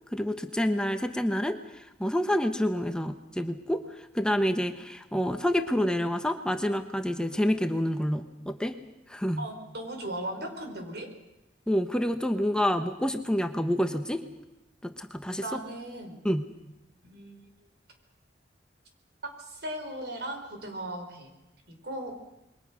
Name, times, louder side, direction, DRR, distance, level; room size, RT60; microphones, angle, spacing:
voice 1, 0.1-8.8 9.1-9.5 11.7-14.2 14.8-15.6 16.2-16.5, equal, 5° left, 6 dB, 1.0 m, -28 dB
voice 2, 9.4-11.1 15.4-16.1 17.0-17.4 19.4-21.3 21.7-22.2, right 1 dB, 65° right, 5 dB, 4.7 m, -37 dB
27.5 x 22.5 x 6.2 m, 0.98 s
head